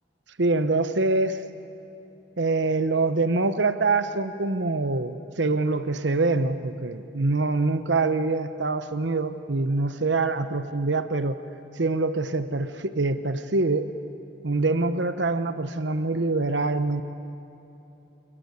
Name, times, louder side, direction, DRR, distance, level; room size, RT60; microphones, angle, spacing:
voice 1, 0.4-1.4 2.4-11.4 11.8-13.9 14.4-17.0, right 3 dB, 75° right, 10 dB, 1.0 m, -25 dB
27.5 x 22.5 x 9.7 m, 2.9 s
head